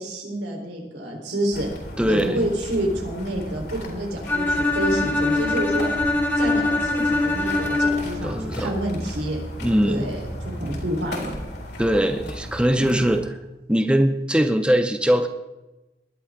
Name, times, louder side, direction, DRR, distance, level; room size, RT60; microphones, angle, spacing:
voice 1, 0.0-1.7 2.1-5.9 6.3-9.4 9.8-11.4 12.8-13.1, right 1 dB, 90° right, 1 dB, 3.9 m, -28 dB
sound 1, 1.5-13.2, equal, 75° left, 4.1 m, -35 dB
voice 2, 2.0-2.4 8.2-8.7 9.6-10.2 11.8-13.2 13.7-15.3, equal, 5° right, 7 dB, 0.7 m, -21 dB
Bowed string instrument, 4.3-8.3, left 2 dB, 10° left, 2.2 m, -23 dB
20.0 x 11.0 x 3.7 m, 1.0 s
head